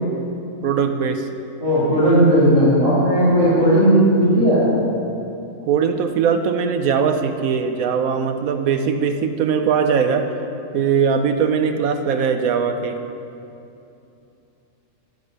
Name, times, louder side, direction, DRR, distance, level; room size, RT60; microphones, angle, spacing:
voice 1, 0.6-1.3 5.7-10.3 10.7-13.0, right 6 dB, 80° right, 7 dB, 1.2 m, -20 dB
voice 2, 1.6-4.7, equal, 15° right, -14 dB, 3.2 m, -15 dB
11.0 x 7.6 x 6.3 m, 2.8 s
omnidirectional pair, 1.5 m